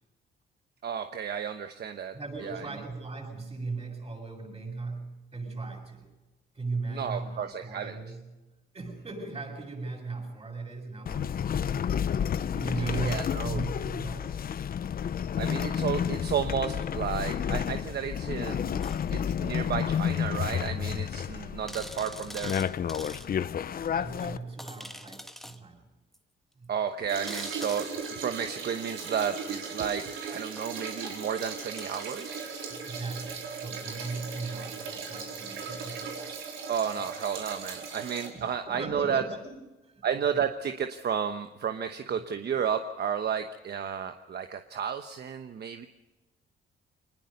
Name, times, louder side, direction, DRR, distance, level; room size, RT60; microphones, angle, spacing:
voice 1, 0.8-2.2 2.4-2.7 6.9-7.9 12.8-13.6 15.4-22.6 26.7-32.4 36.7-39.2 40.0-45.9, right 7 dB, 55° right, 7 dB, 1.1 m, -32 dB
voice 2, 2.1-6.1 6.5-11.8 12.5-14.4 23.9-25.9 26.6-26.7 32.7-36.3 38.3-40.4, right 3 dB, 30° right, 1 dB, 8.0 m, -38 dB
sound 1, 11.1-24.4, left 8 dB, 50° left, 0.7 m, -31 dB
sound 2, 18.8-19.1 20.1-20.2 20.6-20.7 21.0-21.1 21.7-23.3 23.8-23.9 24.6-25.6 26.1-26.2 27.3-28.2 28.8-29.6 30.6-33.6 35.5-35.6, equal, ahead, 1.4 m, -46 dB
sound 3, 27.1-38.3, right 5 dB, 80° right, 4.3 m, -38 dB
23.5 x 20.5 x 5.4 m, 1.1 s
cardioid pair, 90°, 20 cm